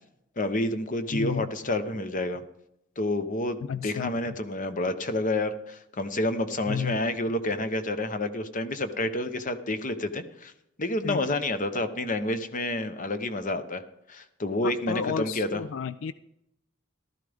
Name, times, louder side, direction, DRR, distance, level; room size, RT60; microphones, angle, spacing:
voice 1, 0.4-2.4 3.0-10.5 10.8-13.8 14.1-15.6, left 1 dB, 40° left, 9 dB, 1.0 m, -29 dB
voice 2, 1.1-1.5 3.7-4.1 6.7-7.0 11.0-11.2 14.6-16.1, left 7 dB, 70° left, 15 dB, 0.4 m, -31 dB
15.0 x 13.0 x 3.5 m, 0.82 s
head